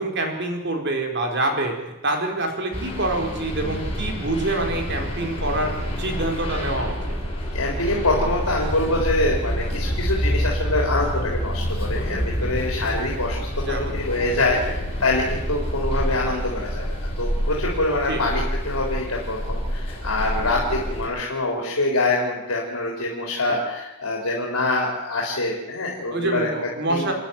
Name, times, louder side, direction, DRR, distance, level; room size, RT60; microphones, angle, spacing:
voice 1, 0.0-1.7 2.0-5.7 6.0-7.2 13.6-14.0 14.4-14.8 18.1-18.4 26.1-27.1, right 2 dB, 50° right, 3 dB, 4.1 m, -26 dB
sound 1, 2.7-21.1, equal, 25° left, 7.1 m, -27 dB
voice 2, 7.5-14.6 15.0-26.5 26.9-27.1, left 2 dB, 85° left, -1 dB, 3.8 m, -25 dB
28.0 x 10.0 x 9.4 m, 1.0 s
head